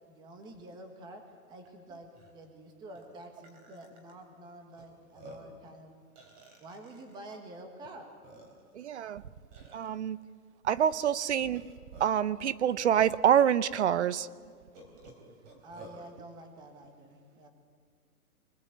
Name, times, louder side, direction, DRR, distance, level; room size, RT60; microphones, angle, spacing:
voice 1, 0.1-1.2 1.5-5.9 6.6-8.1 15.6-17.5, right 1 dB, 10° right, 5 dB, 1.4 m, -48 dB
Burping eructation, 1.7-1.8 2.1-2.3 3.0-3.1 3.4-4.1 4.8-4.9 5.1-5.6 6.2-7.2 7.8-7.9 8.2-8.8 9.5-9.9 11.4-12.3 13.1-13.2 13.7-13.8 14.7-16.0, right 2 dB, 25° right, 3.8 m, -52 dB
voice 2, 8.7-9.2 9.7-10.2 10.6-11.6 12.0-14.3, right 9 dB, 50° right, 17 dB, 0.8 m, -26 dB
25.0 x 20.5 x 8.0 m, 2.1 s
hypercardioid pair, 170°, 45 cm